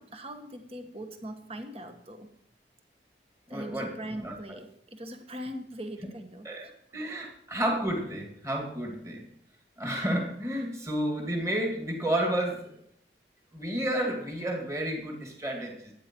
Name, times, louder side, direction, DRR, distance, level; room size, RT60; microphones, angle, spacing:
voice 1, 0.0-2.3 3.5-6.5 7.0-7.2, right 1 dB, 35° right, 6 dB, 1.3 m, -41 dB
voice 2, 3.5-4.6 6.4-9.3 9.8-12.7 13.5-15.9, right 1 dB, 15° right, 1 dB, 2.3 m, -31 dB
12.5 x 9.6 x 4.5 m, 0.70 s
head